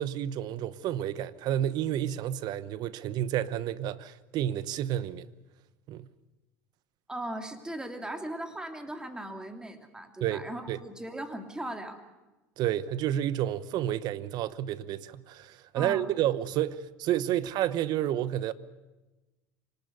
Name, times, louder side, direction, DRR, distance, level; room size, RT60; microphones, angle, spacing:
voice 1, 0.0-5.3 5.9-6.1 10.2-10.8 12.6-18.5, right 11 dB, 55° right, 1.0 m, -30 dB
voice 2, 7.1-12.0 15.8-16.1, right 1 dB, 10° right, 2.9 m, -38 dB
25.0 x 19.0 x 6.8 m
supercardioid pair, 90°, 8 cm